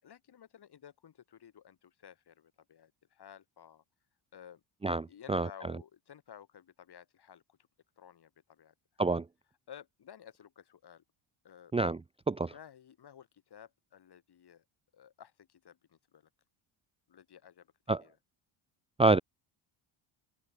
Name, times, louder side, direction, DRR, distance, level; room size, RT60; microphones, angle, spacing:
voice 1, 0.0-3.8 4.3-4.6 5.1-7.6 8.0-8.7 9.7-11.0 11.4-11.7 12.5-14.6 14.9-16.3 17.1-17.7 18.0-18.2, left 9 dB, 50° left, 6.3 m, -54 dB
voice 2, 4.8-5.5 9.0-9.3 11.7-12.0 12.3-12.5 17.9-18.0 19.0-19.2, right 3 dB, 10° right, 0.6 m, -27 dB
cardioid pair, 105°, 50 cm